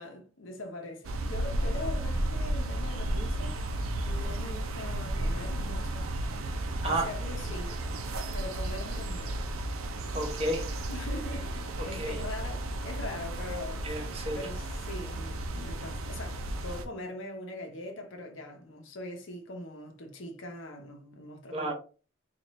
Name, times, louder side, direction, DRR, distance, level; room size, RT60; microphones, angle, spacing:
voice 1, 0.0-3.6 4.1-6.1 6.8-7.8 8.3-9.4 10.9-13.8 14.3-21.7, left 1 dB, 65° left, 0.8 m, -42 dB
sound 1, 1.0-16.8, right 1 dB, 90° right, 0.6 m, -33 dB
voice 2, 10.1-10.7 11.8-12.2 13.8-14.5 21.5-21.7, right 1 dB, 30° right, 0.8 m, -32 dB
4.3 x 2.5 x 3.1 m
head